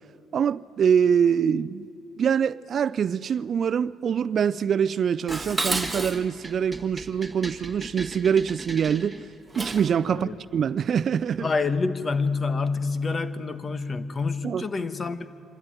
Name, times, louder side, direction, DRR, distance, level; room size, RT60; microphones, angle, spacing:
voice 1, 0.3-1.9 2.2-9.2 9.6-11.5 14.4-14.6, right 7 dB, 55° right, 0.4 m, -24 dB
Dishes pots and pans, 5.3-10.0, right 2 dB, 15° right, 1.7 m, -33 dB
voice 2, 11.4-15.3, left 4 dB, 35° left, 1.1 m, -27 dB
25.5 x 13.0 x 9.1 m
supercardioid pair, 75°, 0 cm